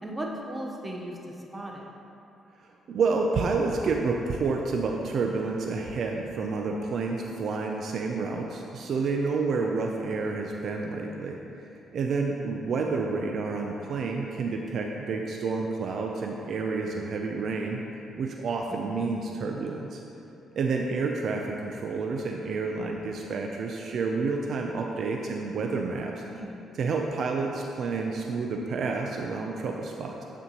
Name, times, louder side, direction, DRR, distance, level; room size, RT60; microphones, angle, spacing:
voice 1, 0.0-1.9 9.6-10.2 18.8-19.1 26.3-26.6, right 1 dB, 15° right, -1 dB, 0.9 m, -38 dB
voice 2, 2.9-11.4 11.9-17.8 18.2-20.0 20.6-26.2 26.8-30.2, right 4 dB, 60° right, 1 dB, 0.4 m, -29 dB
9.4 x 4.4 x 2.9 m, 2.9 s
cardioid pair, 90°, 0 cm